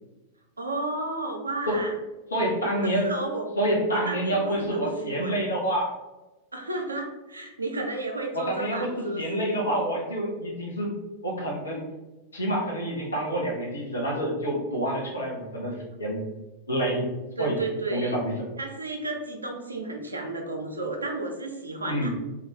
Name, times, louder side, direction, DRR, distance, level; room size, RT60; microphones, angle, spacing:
voice 1, 0.6-1.9 2.8-3.4 3.9-5.4 6.5-9.5 17.4-18.2 18.6-22.1, right 2 dB, 80° right, 2 dB, 0.4 m, -32 dB
voice 2, 2.3-3.1 3.6-5.9 8.3-10.9 11.2-11.8 12.3-16.2 16.7-17.1 17.4-17.6 17.9-18.4 21.9-22.1, right 1 dB, 75° left, -3 dB, 0.8 m, -27 dB
2.4 x 2.3 x 3.1 m, 1.1 s
figure-of-eight pair, 90°, 0 cm